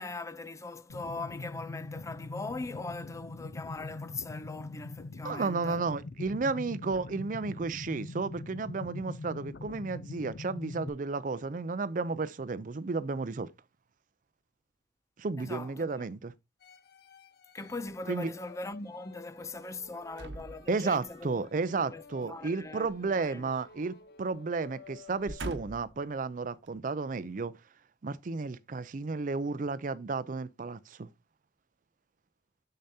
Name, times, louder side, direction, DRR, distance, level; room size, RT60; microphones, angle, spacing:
voice 1, 0.0-5.8 15.4-16.1 17.5-23.5, left 3 dB, 15° left, 0.4 m, -41 dB
sound 1, 0.9-10.9, left 2 dB, 85° left, 0.6 m, -42 dB
voice 2, 5.2-13.5 15.2-16.3 18.1-18.3 20.7-27.5 28.0-31.1, right 4 dB, 50° right, 0.5 m, -33 dB
sound 2, 16.6-25.9, left 4 dB, 65° left, 1.0 m, -55 dB
sound 3, 20.1-21.3 22.8-24.0 24.3-24.5 25.0-26.0 26.7-26.8, right 2 dB, 80° right, 0.9 m, -44 dB
6.8 x 6.7 x 2.7 m
head